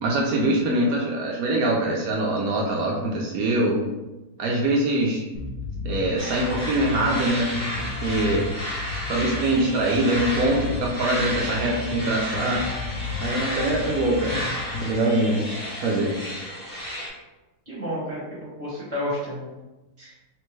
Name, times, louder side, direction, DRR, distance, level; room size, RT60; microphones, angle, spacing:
voice 1, 0.0-3.8 4.4-5.2 5.8-7.5 8.0-8.5 9.1-12.6 13.2-14.4 14.8-15.4 15.7-16.1, right 1 dB, 75° right, -2 dB, 0.8 m, -23 dB
sound 1, 5.3-14.9, left 4 dB, 80° left, 0.7 m, -33 dB
sound 2, 6.2-17.1, equal, 35° left, 1.2 m, -32 dB
voice 2, 17.6-19.5 20.0-20.1, equal, 10° left, -9 dB, 0.9 m, -31 dB
3.3 x 2.9 x 3.1 m, 1.1 s
omnidirectional pair, 2.1 m